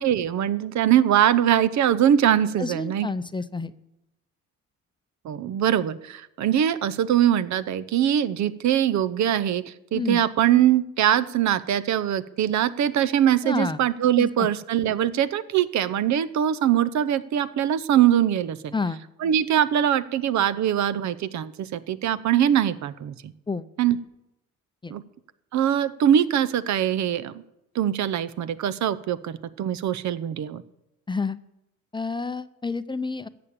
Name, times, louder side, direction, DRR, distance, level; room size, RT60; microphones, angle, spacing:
voice 1, 0.0-3.1 5.2-18.7 19.2-23.3 23.8-24.0 24.9-25.0 25.5-27.4 27.7-30.6, right 10 dB, 65° right, 15 dB, 0.7 m, -22 dB
voice 2, 2.6-3.7 9.9-10.2 13.4-13.8 14.2-14.5 18.7-19.0 23.5-23.7 24.8-24.9 31.1-31.4 31.9-33.3, left 4 dB, 15° left, 12 dB, 0.5 m, -29 dB
14.0 x 6.9 x 8.7 m, 0.88 s
cardioid pair, 90°, 30 cm